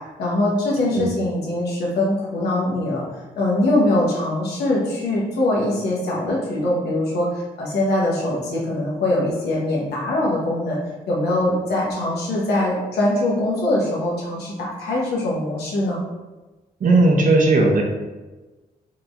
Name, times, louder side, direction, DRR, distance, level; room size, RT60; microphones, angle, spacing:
voice 1, 0.2-3.0 3.3-10.8 11.1-16.0, left 1 dB, 85° left, -4 dB, 1.2 m, -22 dB
voice 2, 16.8-17.8, right 2 dB, 55° right, 1 dB, 0.8 m, -16 dB
4.4 x 3.2 x 2.6 m, 1.2 s
supercardioid pair, 55°, 16 cm